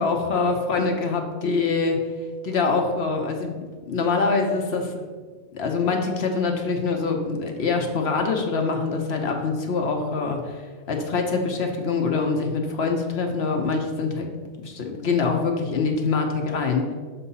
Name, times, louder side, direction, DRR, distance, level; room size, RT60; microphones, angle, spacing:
voice 1, 0.0-2.0 2.4-3.5 3.9-4.9 5.5-14.3 14.6-16.9, left 4 dB, 60° left, 3 dB, 0.9 m, -24 dB
6.9 x 2.7 x 5.5 m, 1.5 s
omnidirectional pair, 1.3 m